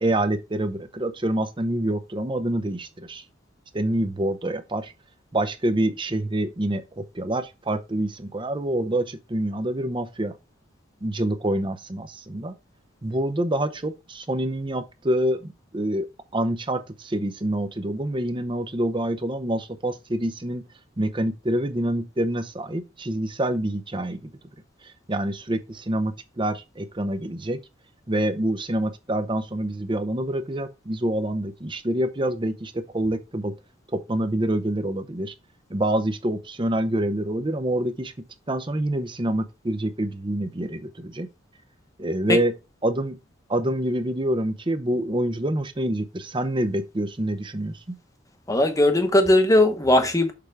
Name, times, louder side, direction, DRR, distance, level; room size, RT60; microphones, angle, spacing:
voice 1, 0.0-3.2 3.7-4.9 5.3-10.3 11.0-12.5 13.0-16.1 16.3-20.6 21.0-24.3 25.1-27.6 28.1-33.5 33.9-35.3 35.7-38.1 38.5-41.3 42.0-42.5 42.8-43.2 43.5-48.0, right 1 dB, 25° right, 0.7 m, -26 dB
voice 2, 48.5-50.3, left 1 dB, 15° left, 1.0 m, -18 dB
6.8 x 4.9 x 3.3 m
head